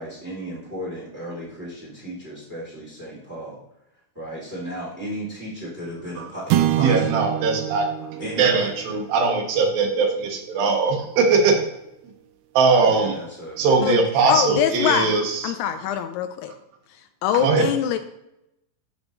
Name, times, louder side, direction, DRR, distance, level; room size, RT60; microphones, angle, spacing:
voice 1, 0.0-3.6 4.1-7.2 8.2-8.8 12.8-13.6, equal, 5° right, -4 dB, 1.9 m, -35 dB
sound 1, 6.5-11.0, right 13 dB, 90° right, 2.7 m, -27 dB
voice 2, 6.8-7.9 8.4-11.6 12.5-13.2 13.6-15.8 17.4-17.7, right 4 dB, 70° right, 2 dB, 3.1 m, -20 dB
voice 3, 14.3-15.1 15.4-16.5 17.2-18.0, left 9 dB, 85° left, 8 dB, 2.5 m, -23 dB
14.0 x 5.2 x 3.1 m, 0.87 s
omnidirectional pair, 4.7 m